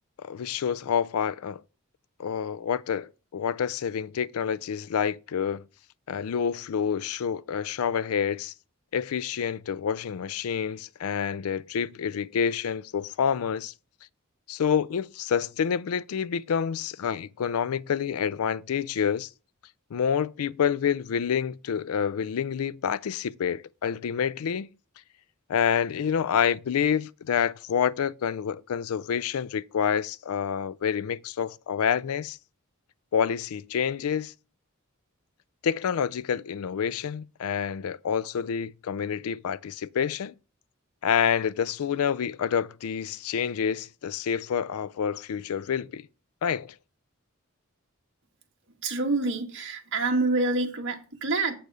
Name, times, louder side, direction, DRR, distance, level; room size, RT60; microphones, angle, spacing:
voice 1, 0.2-1.6 2.2-5.6 6.1-8.5 8.9-13.7 14.5-19.3 19.9-24.7 25.5-32.4 33.1-34.3 35.6-40.3 41.0-46.1 46.4-46.7, left 7 dB, 85° left, 0.4 m, -28 dB
voice 2, 48.8-51.5, right 3 dB, 60° right, 1.9 m, -27 dB
7.8 x 6.8 x 4.9 m
head